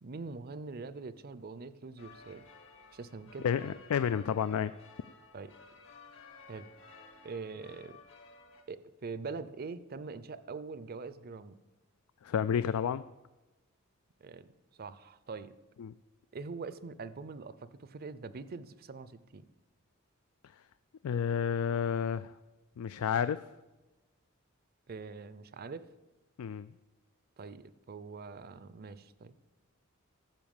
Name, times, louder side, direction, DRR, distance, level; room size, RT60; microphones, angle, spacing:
voice 1, 0.0-2.4 2.9-3.5 5.3-5.6 6.5-6.7 7.2-8.0 8.7-11.6 14.2-14.5 14.8-15.6 16.3-19.5 24.9-25.9 27.4-29.3, right 4 dB, 45° right, 15 dB, 0.5 m, -43 dB
sound 1, 2.0-8.6, left 3 dB, 65° left, 1.5 m, -55 dB
voice 2, 3.4-4.7 12.2-13.0 15.8-15.9 21.0-22.3 22.8-23.5 26.4-26.7, left 7 dB, 90° left, 14 dB, 0.3 m, -31 dB
14.5 x 5.7 x 7.2 m, 1.1 s
head